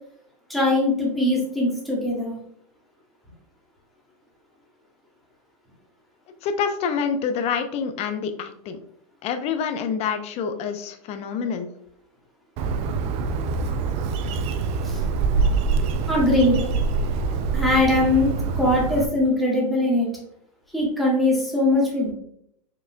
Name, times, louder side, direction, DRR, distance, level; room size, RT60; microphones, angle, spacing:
voice 1, 0.5-2.3 14.8-15.0 16.1-16.7 17.5-20.1 20.7-22.1, left 1 dB, ahead, -5 dB, 1.8 m, -21 dB
voice 2, 6.4-8.8 9.2-11.7, left 6 dB, 35° left, 8 dB, 0.6 m, -27 dB
Bird, 12.6-19.1, right 4 dB, 35° right, 0.4 m, -25 dB
5.9 x 3.6 x 2.2 m, 0.69 s
hypercardioid pair, 130°, 20 cm